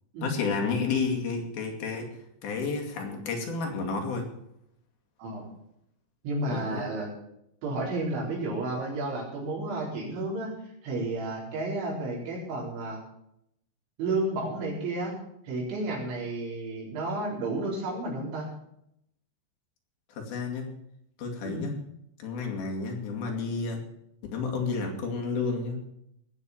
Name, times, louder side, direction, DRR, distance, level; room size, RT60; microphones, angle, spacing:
voice 1, 0.2-2.1 2.4-4.3 6.5-6.8 20.1-20.7 21.2-21.8 22.2-23.8 24.3-25.9, left 4 dB, 60° left, 2 dB, 3.9 m, -31 dB
voice 2, 5.2-5.5 6.2-7.1 7.6-10.5 10.8-13.0 14.0-15.1 15.4-18.5 21.4-21.7, right 2 dB, 80° right, -2 dB, 6.4 m, -31 dB
19.0 x 6.9 x 7.2 m, 0.77 s
omnidirectional pair, 5.3 m